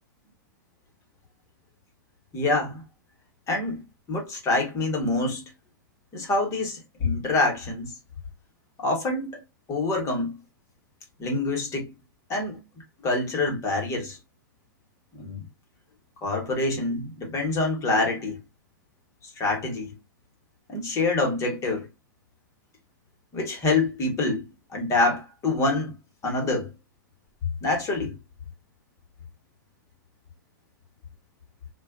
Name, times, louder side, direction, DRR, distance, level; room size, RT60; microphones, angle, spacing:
voice 1, 2.3-2.8 3.5-5.4 6.1-7.9 8.8-9.4 9.7-10.4 11.2-11.9 12.3-12.6 13.0-14.2 15.1-15.4 16.2-18.4 19.4-19.9 20.7-21.9 23.3-24.4 24.7-25.9 26.2-26.7 27.6-28.1, left 2 dB, 25° left, 1.1 m, -26 dB
2.4 x 2.2 x 2.4 m
hypercardioid pair, 120°, 11 cm